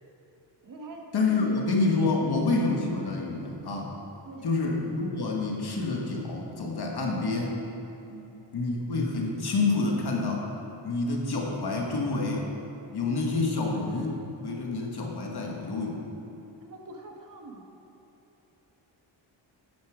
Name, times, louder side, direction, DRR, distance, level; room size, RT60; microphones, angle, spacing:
voice 1, 0.6-1.6 2.1-2.2 4.2-4.6 8.1-8.4 16.6-17.7, right 3 dB, 40° right, 1 dB, 1.4 m, -43 dB
voice 2, 1.1-3.9 4.4-7.6 8.5-10.4 10.8-12.5 12.9-16.1, left 3 dB, 55° left, 0 dB, 1.4 m, -28 dB
11.0 x 7.9 x 4.9 m, 3.0 s
wide cardioid pair, 155°, 47 cm